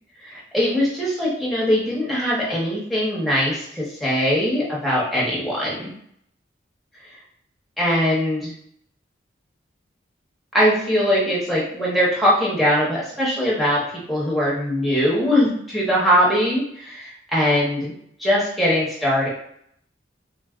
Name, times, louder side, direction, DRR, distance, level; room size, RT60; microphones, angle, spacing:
voice 1, 0.2-5.9 7.8-8.5 10.5-13.8 14.1-17.9 18.2-19.3, equal, ahead, -6 dB, 0.8 m, -21 dB
3.4 x 2.3 x 2.4 m, 0.70 s
head